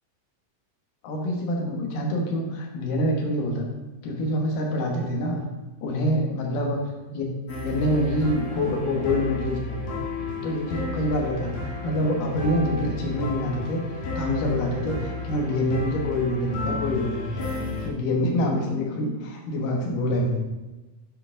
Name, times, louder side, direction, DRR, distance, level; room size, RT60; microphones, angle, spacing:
voice 1, 1.0-3.7 4.0-5.4 5.8-7.3 7.6-9.8 10.4-13.8 14.2-17.4 17.8-20.5, left 1 dB, 80° left, 1 dB, 2.9 m, -26 dB
sound 1, 7.5-17.9, left 3 dB, 60° left, 2.5 m, -32 dB
9.8 x 5.4 x 3.7 m, 1.1 s
omnidirectional pair, 3.8 m